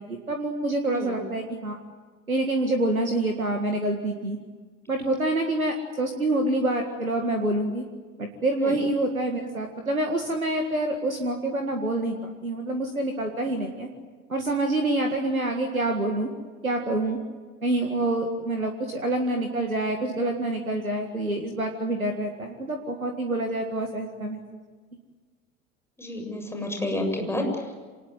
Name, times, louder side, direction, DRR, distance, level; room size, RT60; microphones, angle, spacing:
voice 1, 0.0-1.8 2.3-4.4 4.9-7.8 8.2-13.9 14.3-16.3 16.6-17.2 17.6-24.4, right 1 dB, 85° right, 4 dB, 2.0 m, -27 dB
voice 2, 0.9-1.2 8.6-8.8 26.0-27.7, left 1 dB, 5° left, 3 dB, 7.4 m, -30 dB
27.0 x 19.5 x 9.3 m, 1.4 s
figure-of-eight pair, 75°, 41 cm